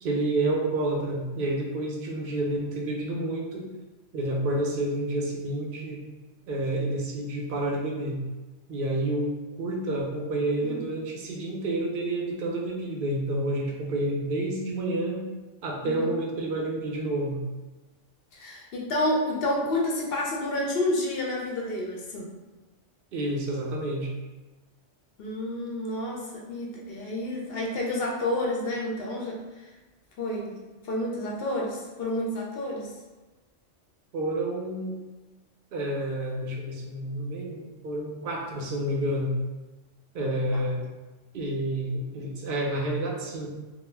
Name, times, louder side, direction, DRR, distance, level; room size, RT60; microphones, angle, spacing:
voice 1, 0.0-3.7 4.1-6.0 6.5-8.2 8.7-15.3 15.6-17.4 23.1-24.1 34.1-34.9 35.7-39.4 40.1-40.8 41.3-43.5, right 1 dB, 60° right, -1 dB, 0.6 m, -29 dB
voice 2, 18.3-22.3 25.2-29.4 30.2-32.9 40.5-40.6, left 1 dB, 65° left, -2 dB, 0.7 m, -30 dB
2.2 x 2.1 x 3.2 m, 1.2 s
omnidirectional pair, 1.3 m